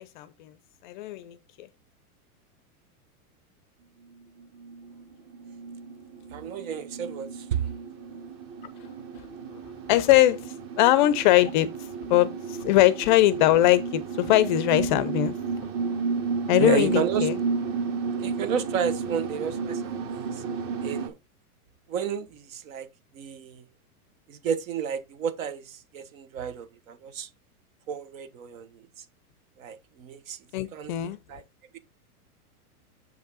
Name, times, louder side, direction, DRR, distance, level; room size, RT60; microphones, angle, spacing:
voice 1, 0.8-1.7 9.9-10.4 10.8-11.7 12.1-15.4 16.5-17.4 30.5-31.2, left 15 dB, 35° left, 0.5 m, -21 dB
sound 1, 4.4-21.1, right 5 dB, 30° right, 1.3 m, -32 dB
voice 2, 6.3-7.7 16.6-17.3 18.2-20.4 20.8-21.2 21.9-22.9 23.1-23.6 24.3-27.3 27.9-28.8 29.6-30.4 30.7-30.9 31.3-31.4, right 7 dB, 60° right, 1.4 m, -31 dB
6.8 x 5.3 x 3.9 m
supercardioid pair, 150°, 45 cm